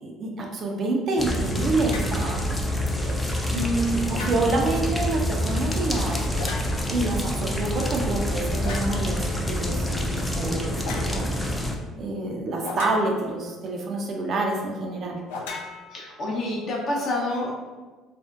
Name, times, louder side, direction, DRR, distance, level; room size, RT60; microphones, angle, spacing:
voice 1, 0.0-2.4 2.9-3.2 3.5-6.2 6.9-11.3 12.0-15.2, right 2 dB, 50° right, 1 dB, 0.4 m, -27 dB
sound 1, 1.2-11.8, equal, 10° left, 0.4 m, -27 dB
sound 2, 1.9-2.2 4.1-4.7 6.3-7.0 8.6-9.0 10.8-11.1 12.6-13.4 15.3-16.4, left 3 dB, 85° left, 0.3 m, -36 dB
voice 2, 15.9-17.6, left 1 dB, 50° left, -2 dB, 0.7 m, -28 dB
2.5 x 2.1 x 2.4 m, 1.3 s
hypercardioid pair, 70°, 0 cm